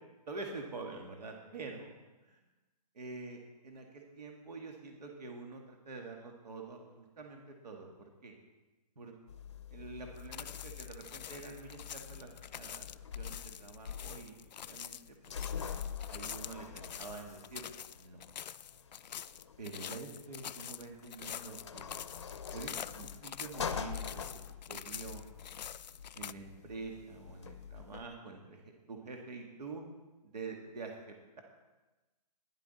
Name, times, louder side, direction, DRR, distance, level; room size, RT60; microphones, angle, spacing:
voice 1, 0.3-1.9 2.3-2.4 3.0-8.3 9.0-9.1 9.7-12.9 13.1-14.4 14.7-15.0 15.3-15.4 16.1-17.6 17.9-18.2 19.6-21.9 22.5-24.2 24.7-25.2 26.2-28.6 28.9-29.8 30.2-31.4, right 3 dB, 70° right, 2 dB, 1.9 m, -46 dB
sound 1, 9.3-28.0, left 7 dB, 45° left, 0.6 m, -45 dB
sound 2, 10.2-26.3, left 9 dB, 85° left, 0.4 m, -46 dB
11.5 x 11.0 x 4.2 m, 1.2 s
hypercardioid pair, 175°, 21 cm